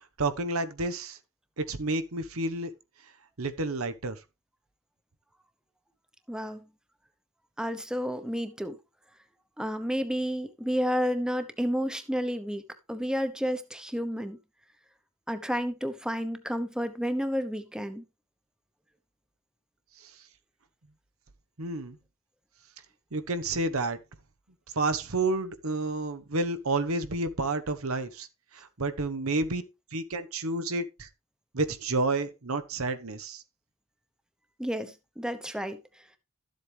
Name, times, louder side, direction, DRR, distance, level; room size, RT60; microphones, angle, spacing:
voice 1, 0.2-1.2 1.6-2.7 3.4-4.2 20.0-20.1 21.6-22.0 23.1-24.0 24.7-28.3 28.5-29.6 29.9-31.1 31.5-33.4, right 2 dB, 80° right, 1.1 m, -30 dB
voice 2, 6.3-6.6 7.6-8.8 9.6-12.6 12.9-14.4 15.3-18.0 34.6-35.8, equal, 5° right, 0.9 m, -31 dB
13.0 x 7.8 x 3.4 m
head